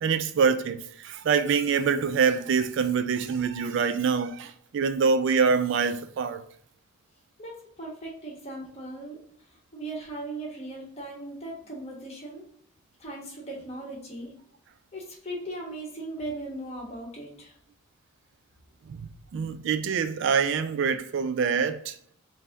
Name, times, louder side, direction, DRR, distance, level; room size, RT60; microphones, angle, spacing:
voice 1, 0.0-6.4 18.9-22.0, right 6 dB, 60° right, 0.3 m, -25 dB
voice 2, 7.4-9.2 9.5-12.5 13.0-14.3 14.9-17.5, right 2 dB, 30° left, 1.2 m, -38 dB
4.1 x 2.7 x 3.4 m
head